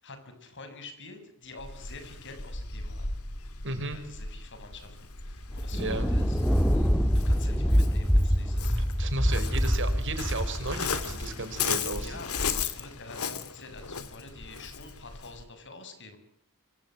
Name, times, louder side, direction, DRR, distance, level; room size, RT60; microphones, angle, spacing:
voice 1, 0.0-3.1 3.8-6.4 7.2-8.9 9.3-9.6 11.9-16.2, left 3 dB, 55° left, 8 dB, 7.1 m, -47 dB
Waves surf, 1.6-15.4, left 5 dB, 80° left, 2.9 m, -36 dB
voice 2, 3.6-4.0 5.7-6.1 9.0-12.1, right 2 dB, 55° right, 9 dB, 5.3 m, -34 dB
Thunder, 5.6-12.2, equal, 5° left, 2.0 m, -26 dB
26.0 x 25.5 x 7.7 m, 0.65 s
head